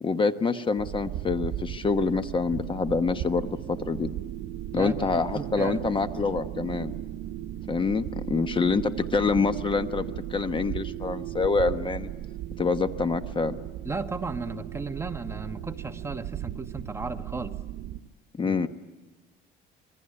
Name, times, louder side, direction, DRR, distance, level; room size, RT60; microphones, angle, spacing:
voice 1, 0.0-4.1 4.7-6.9 7.7-12.1 12.6-13.6 18.4-18.7, left 4 dB, 25° left, 10 dB, 1.2 m, -26 dB
sound 1, 0.8-18.0, right 12 dB, 70° right, 1.3 m, -36 dB
voice 2, 4.7-5.8 13.8-17.5 18.4-18.7, right 3 dB, 15° right, 6 dB, 1.3 m, -35 dB
27.0 x 22.0 x 9.9 m, 1.2 s
cardioid pair, 130°, 19 cm